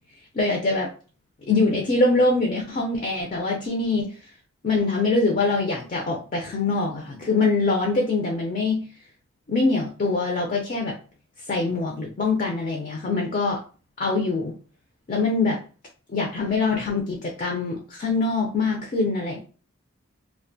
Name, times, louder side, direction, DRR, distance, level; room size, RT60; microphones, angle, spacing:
voice 1, 0.3-0.9 1.5-4.2 4.6-8.9 9.5-11.0 11.5-13.6 14.0-14.5 15.1-15.6 16.1-19.4, left 3 dB, 35° left, 0 dB, 0.4 m, -24 dB
2.4 x 2.1 x 2.6 m, 0.37 s
head